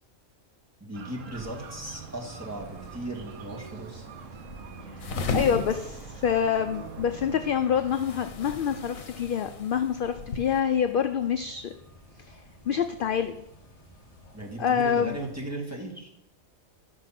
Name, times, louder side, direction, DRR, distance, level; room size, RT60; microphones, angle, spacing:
voice 1, 0.8-4.1 14.3-16.1, right 1 dB, 10° right, -3 dB, 2.2 m, -37 dB
sound 1, 0.9-8.3, right 6 dB, 70° right, 1.2 m, -44 dB
sound 2, 1.3-15.5, equal, 25° left, 1.7 m, -51 dB
sound 3, 5.0-10.6, left 3 dB, 80° left, 1.4 m, -36 dB
voice 2, 5.0-11.7 12.3-12.4 12.7-13.4 14.6-15.2, left 8 dB, 60° left, 8 dB, 0.5 m, -26 dB
11.5 x 6.5 x 5.8 m, 0.85 s
omnidirectional pair, 1.4 m